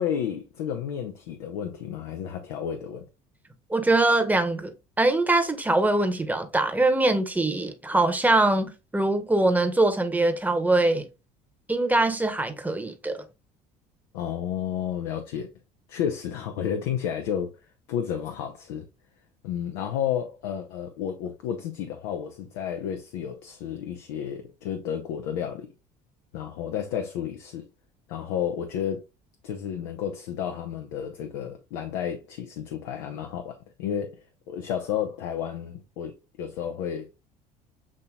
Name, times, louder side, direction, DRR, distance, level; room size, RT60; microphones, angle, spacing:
voice 1, 0.0-3.1 14.1-15.5 15.9-17.5 17.9-18.9 19.4-25.7 26.3-27.6 28.1-29.0 29.4-37.1, left 9 dB, 80° left, 0.6 m, -31 dB
voice 2, 3.7-11.1 11.7-13.2, right 2 dB, 10° right, 1.0 m, -23 dB
7.3 x 2.8 x 2.3 m
hypercardioid pair, 70°, 21 cm